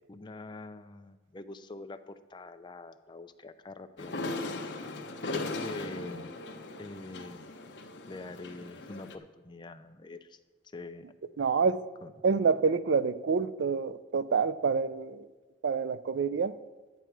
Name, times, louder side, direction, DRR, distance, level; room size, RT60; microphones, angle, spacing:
voice 1, 0.1-4.4 4.7-4.9 5.2-6.3 6.8-7.5 8.1-10.4 10.7-11.0 12.0-12.1, left 2 dB, 25° left, 0.5 m, -45 dB
sound 1, 4.0-9.1, left 2 dB, 65° left, 0.8 m, -38 dB
voice 2, 11.4-11.9 12.2-15.3 15.6-16.6, right 5 dB, 80° right, 0.4 m, -27 dB
11.0 x 9.2 x 4.6 m
head